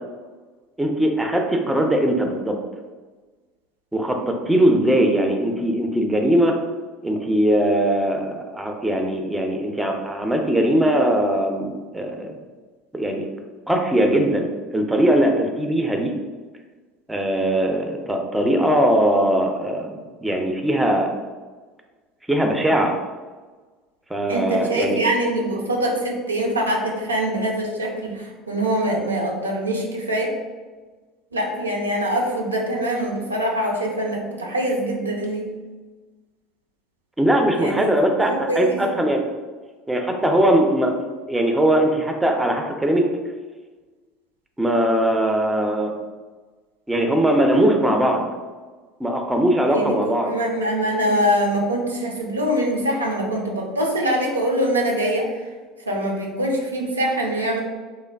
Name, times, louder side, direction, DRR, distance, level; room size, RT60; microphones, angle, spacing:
voice 1, 0.8-2.6 3.9-6.5 7.0-12.3 12.9-13.3 13.7-16.1 17.1-20.0 20.2-21.1 22.3-22.9 24.1-25.0 37.2-39.2 39.9-43.1 44.6-45.9 46.9-48.3 49.0-50.3, right 1 dB, 10° right, 3 dB, 0.4 m, -20 dB
voice 2, 24.3-30.3 31.3-35.5 37.5-37.9 38.2-38.8 49.7-55.5 55.9-57.6, right 1 dB, 85° right, -1 dB, 0.3 m, -23 dB
3.1 x 2.0 x 2.2 m, 1.3 s
figure-of-eight pair, 65°, 0 cm